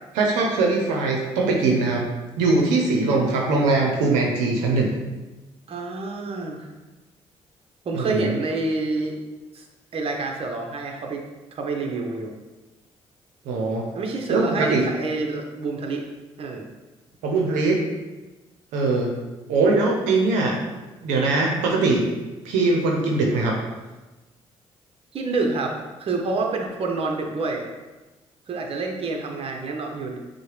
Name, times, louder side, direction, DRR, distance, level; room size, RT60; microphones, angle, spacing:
voice 1, 0.2-2.1 2.4-4.9 7.9-8.3 13.5-13.9 14.3-14.8 17.2-17.8 18.7-19.1 19.5-20.6 21.0-22.1 22.4-23.6, right 3 dB, 85° right, 0 dB, 0.6 m, -21 dB
voice 2, 5.7-6.7 7.9-9.2 9.5-9.6 9.9-11.2 11.5-12.3 13.9-16.0 16.4-16.6 25.1-27.6 28.5-30.2, right 3 dB, 50° right, 2 dB, 0.8 m, -27 dB
6.2 x 2.1 x 3.2 m, 1.1 s
supercardioid pair, 60°, 12 cm